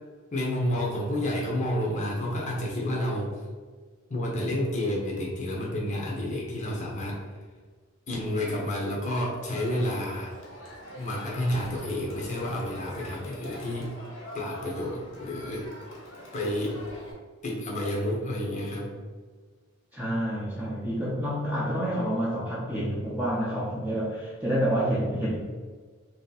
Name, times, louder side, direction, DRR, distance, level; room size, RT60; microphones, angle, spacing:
voice 1, 0.3-3.4 4.1-7.2 8.1-10.3 10.9-13.9 14.3-15.7 16.3-16.8 17.4-18.9, left 1 dB, 40° left, -3 dB, 0.7 m, -30 dB
Crowd, 9.6-17.1, equal, 80° left, 1.1 m, -44 dB
voice 2, 19.9-25.4, equal, 10° right, -7 dB, 0.6 m, -28 dB
3.1 x 2.7 x 3.9 m, 1.5 s
head